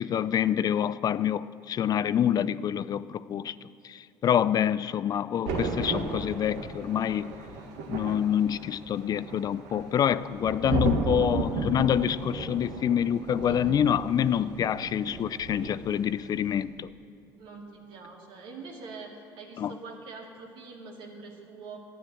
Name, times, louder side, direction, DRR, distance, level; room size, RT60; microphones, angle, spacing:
voice 1, 0.0-3.6 3.8-7.3 7.9-16.9 19.6-19.7, left 9 dB, 45° left, 16 dB, 0.4 m, -27 dB
Thunder, 5.5-16.1 16.3-16.6, right 3 dB, 80° right, 1.4 m, -34 dB
voice 2, 17.4-21.8, right 4 dB, 65° right, 0 dB, 2.4 m, -44 dB
11.5 x 9.7 x 7.6 m, 2.7 s
supercardioid pair, 80°, 9 cm